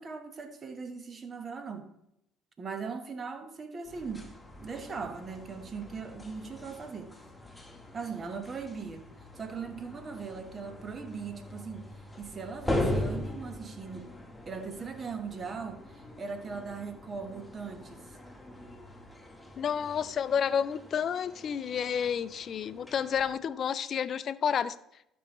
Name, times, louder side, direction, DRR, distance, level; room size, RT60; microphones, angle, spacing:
voice 1, 0.0-1.9 2.6-4.3 4.6-7.1 7.9-9.1 9.4-11.9 12.2-14.1 14.5-18.0, right 5 dB, 35° right, 8 dB, 1.2 m, -39 dB
sound 1, 3.8-19.1, left 1 dB, 25° left, 1.6 m, -55 dB
sound 2, 3.9-23.3, left 1 dB, 5° left, 1.5 m, -40 dB
voice 2, 19.6-24.8, left 8 dB, 50° left, 16 dB, 0.4 m, -30 dB
12.5 x 5.5 x 3.1 m, 0.80 s
hypercardioid pair, 55°, 0 cm